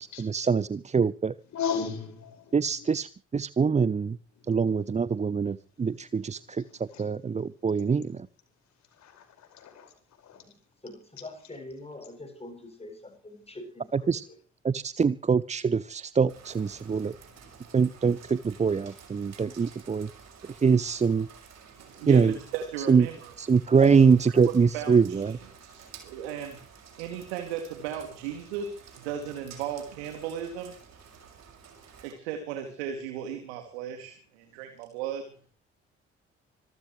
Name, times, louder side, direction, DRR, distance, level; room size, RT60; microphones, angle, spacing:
voice 1, 0.0-1.3 2.5-4.2 4.5-8.3 13.9-14.2 14.6-17.1 17.7-20.1 20.4-21.3 22.1-22.4 22.8-23.1 23.4-25.4, right 5 dB, 20° right, 0.7 m, -24 dB
voice 2, 1.5-2.9 4.4-5.1 5.8-7.1 8.9-9.9 10.2-10.4 11.2-11.5 16.6-17.2 17.7-17.8 19.2-19.3, left 6 dB, 55° left, 5.4 m, -38 dB
voice 3, 10.8-14.3, left 2 dB, 20° left, 7.9 m, -44 dB
Rain, 16.3-32.1, right 6 dB, 50° right, 6.0 m, -51 dB
voice 4, 21.8-23.3 23.8-23.9 24.5-26.6 27.0-30.8 32.0-35.3, right 9 dB, 70° right, 2.6 m, -36 dB
26.5 x 13.5 x 3.2 m
figure-of-eight pair, 45°, 33 cm